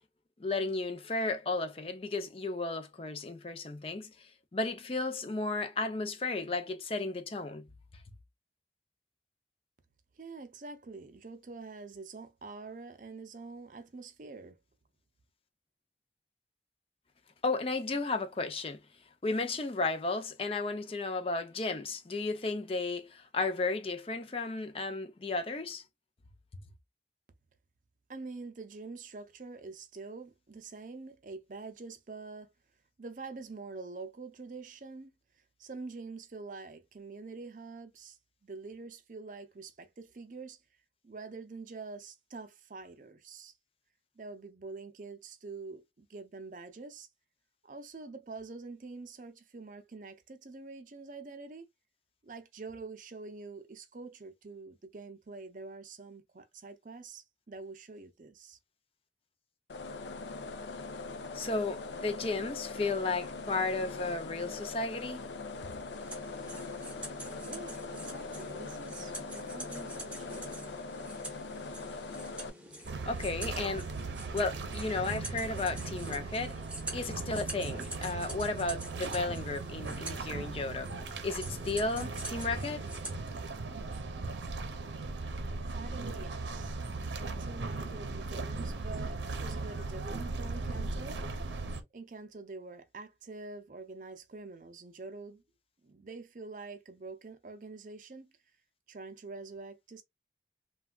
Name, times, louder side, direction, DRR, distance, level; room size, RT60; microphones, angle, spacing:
voice 1, 0.4-7.7 17.4-18.8 19.2-25.8 61.3-65.2 73.1-73.9 74.3-76.6 76.9-80.9 81.2-82.8, left 3 dB, 30° left, 0.4 m, -34 dB
voice 2, 10.1-14.6 28.1-32.5 33.0-35.1 35.6-40.6 41.0-43.5 44.2-47.1 47.6-51.7 52.2-58.6 67.4-70.7 85.7-86.8 87.4-91.2 91.9-95.4 95.8-98.3 98.9-100.0, right 3 dB, 45° right, 0.5 m, -46 dB
sound 1, 59.7-72.5, left 3 dB, 85° left, 0.5 m, -41 dB
sound 2, 66.0-83.2, right 1 dB, 5° right, 0.7 m, -46 dB
sound 3, 72.8-91.8, right 3 dB, 85° right, 0.6 m, -38 dB
3.3 x 2.3 x 2.3 m
head